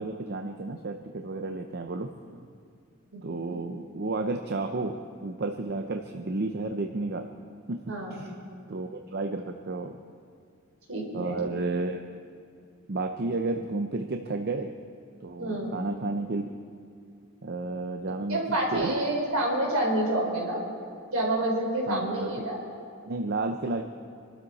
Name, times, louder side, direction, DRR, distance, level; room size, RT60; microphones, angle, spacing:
voice 1, 0.0-2.5 3.2-7.3 7.7-7.8 8.1-8.3 8.7-10.0 11.1-12.0 12.9-14.7 15.2-16.5 17.4-18.4 18.7-19.0 21.9-22.5 23.1-23.8, right 3 dB, 50° right, 5 dB, 0.7 m, -32 dB
voice 2, 7.9-8.2 10.9-11.4 15.4-15.7 18.3-20.6 21.1-22.6, right 1 dB, 70° right, -1 dB, 4.2 m, -28 dB
25.5 x 12.5 x 4.2 m, 2.4 s
head